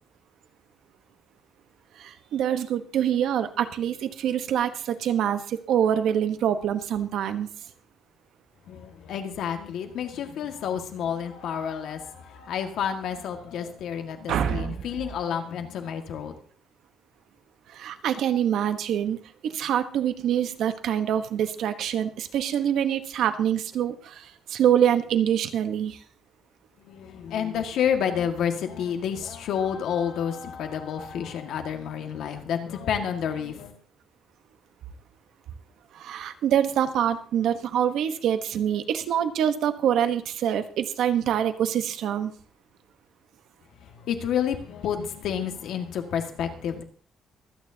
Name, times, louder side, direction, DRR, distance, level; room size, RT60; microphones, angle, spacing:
voice 1, 2.0-7.5 14.3-14.7 17.7-19.2 19.4-26.0 35.9-42.3, right 9 dB, 70° right, 1.1 m, -25 dB
voice 2, 8.7-16.3 26.8-33.7 43.8-46.8, left 8 dB, 70° left, 1.8 m, -30 dB
24.0 x 9.2 x 2.8 m
cardioid pair, 150°, 0 cm